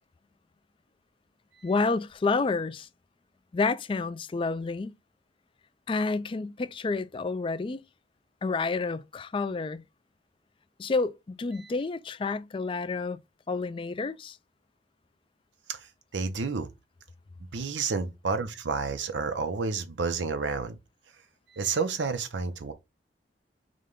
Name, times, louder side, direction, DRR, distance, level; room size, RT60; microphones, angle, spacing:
voice 1, 1.6-2.9 3.5-4.9 5.9-7.8 8.4-9.8 10.8-13.2 13.5-14.4, left 4 dB, 30° left, 0.3 m, -29 dB
voice 2, 16.1-16.7 17.5-20.8 21.5-22.7, right 4 dB, 85° right, 0.6 m, -30 dB
5.0 x 2.2 x 3.7 m
head